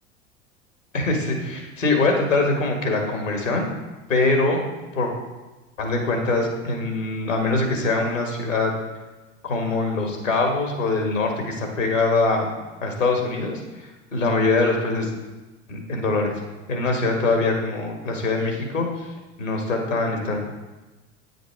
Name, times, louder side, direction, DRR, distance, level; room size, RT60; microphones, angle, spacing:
voice 1, 0.9-3.7 4.1-4.6 4.9-5.1 5.8-8.7 9.4-12.5 12.8-13.6 14.1-15.1 15.7-16.3 16.7-19.1 19.4-20.4, left 3 dB, 90° left, 2 dB, 1.8 m, -23 dB
9.4 x 6.5 x 4.5 m, 1.1 s
hypercardioid pair, 80°, 37 cm